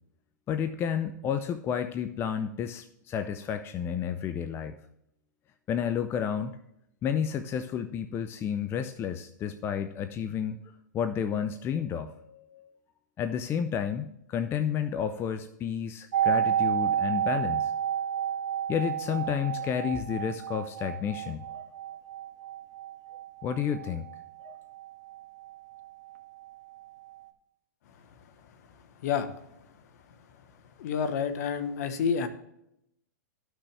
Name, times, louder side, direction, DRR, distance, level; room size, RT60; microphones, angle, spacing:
voice 1, 0.5-4.8 5.7-6.6 7.0-10.6 10.9-12.7 13.2-17.7 18.7-21.6 23.4-24.1 24.4-24.6, left 8 dB, 25° left, 10 dB, 0.5 m, -31 dB
sound 1, 16.1-25.9 26.1-26.2, right 9 dB, 65° right, 1.2 m, -31 dB
voice 2, 30.8-32.3, left 6 dB, 60° left, 10 dB, 1.2 m, -28 dB
13.0 x 6.2 x 3.3 m, 0.79 s
hypercardioid pair, 120°, 10 cm